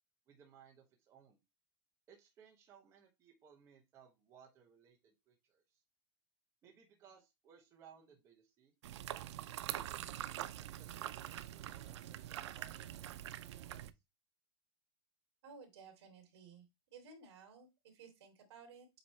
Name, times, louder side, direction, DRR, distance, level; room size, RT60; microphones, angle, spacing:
voice 1, 0.3-1.4 2.1-5.8 6.6-8.7 9.7-13.9, right 7 dB, 20° right, 1 dB, 1.0 m, -63 dB
sound 1, 8.8-13.9, right 12 dB, 90° right, 0.6 m, -44 dB
voice 2, 15.4-16.7 16.9-18.9, right 5 dB, 65° right, 4 dB, 2.7 m, -56 dB
7.9 x 3.1 x 4.2 m, 0.23 s
supercardioid pair, 180°, 14 cm